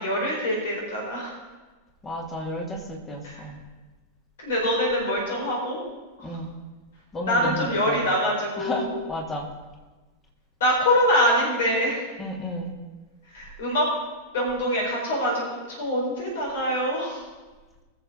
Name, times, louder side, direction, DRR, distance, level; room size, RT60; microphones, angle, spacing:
voice 1, 0.0-1.3 3.2-3.4 4.4-5.8 6.2-6.3 7.2-9.0 10.6-12.0 13.3-13.8 14.3-17.2, equal, 60° left, -2 dB, 4.6 m, -24 dB
voice 2, 2.0-3.6 6.2-6.5 7.1-8.0 8.6-9.5 12.2-12.7, left 1 dB, 20° left, 1 dB, 2.5 m, -32 dB
21.0 x 7.5 x 3.9 m, 1.2 s
figure-of-eight pair, 90°, 0 cm